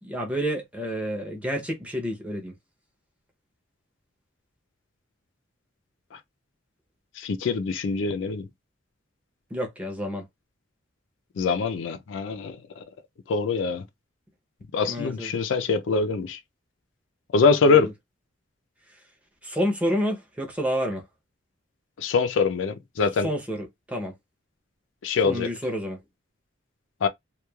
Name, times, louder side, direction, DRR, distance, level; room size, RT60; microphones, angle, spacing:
voice 1, 0.0-2.5 9.5-10.3 14.8-15.3 17.6-17.9 19.4-21.1 23.2-24.1 25.2-26.0, equal, 5° right, 0.6 m, -29 dB
voice 2, 7.2-8.5 11.4-12.6 13.3-13.8 14.7-16.4 17.3-17.9 22.0-23.3 25.0-25.5 27.0-27.1, left 4 dB, 75° left, 0.4 m, -23 dB
3.0 x 2.2 x 2.2 m
head